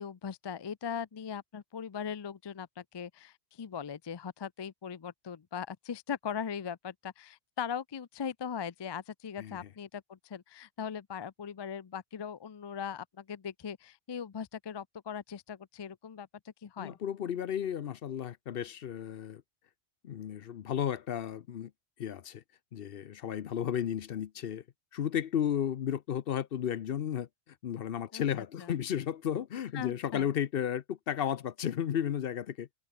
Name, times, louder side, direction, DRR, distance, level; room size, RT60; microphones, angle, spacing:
voice 1, 0.0-17.0 28.1-28.3 28.6-28.7 29.7-30.3, left 7 dB, 40° left, 0.3 m, -39 dB
voice 2, 16.8-19.4 20.0-21.7 22.0-22.4 22.7-24.6 24.9-27.3 27.6-32.7, left 9 dB, 60° left, 0.8 m, -33 dB
omnidirectional pair, 1.2 m